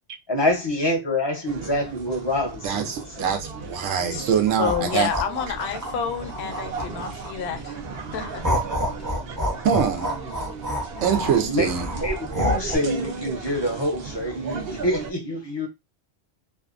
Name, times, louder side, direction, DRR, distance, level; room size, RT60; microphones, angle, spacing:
voice 1, 0.3-3.4 11.2-15.7, left 1 dB, 30° left, 0.5 m, -26 dB
sound 1, 1.4-15.1, right 5 dB, 60° right, 0.8 m, -36 dB
voice 2, 2.6-5.1 9.6-10.2 11.0-11.9, right 7 dB, 85° right, 1.0 m, -23 dB
sound 2, 4.5-7.5 7.9-12.8, equal, 20° right, 0.6 m, -28 dB
voice 3, 4.6-7.8 8.1-8.5, left 7 dB, 65° left, 0.8 m, -29 dB
2.6 x 2.3 x 2.4 m
omnidirectional pair, 1.3 m